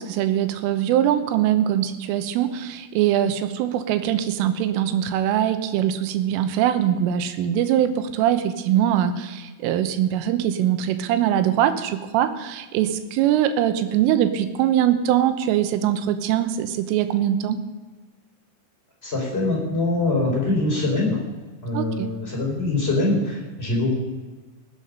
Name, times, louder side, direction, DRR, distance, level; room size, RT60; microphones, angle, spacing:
voice 1, 0.0-17.6 21.7-22.1, right 11 dB, 85° right, 10 dB, 3.5 m, -22 dB
voice 2, 19.0-21.2 21.6-24.0, left 2 dB, 10° left, -3 dB, 4.4 m, -23 dB
19.5 x 8.5 x 5.4 m, 1.3 s
omnidirectional pair, 5.6 m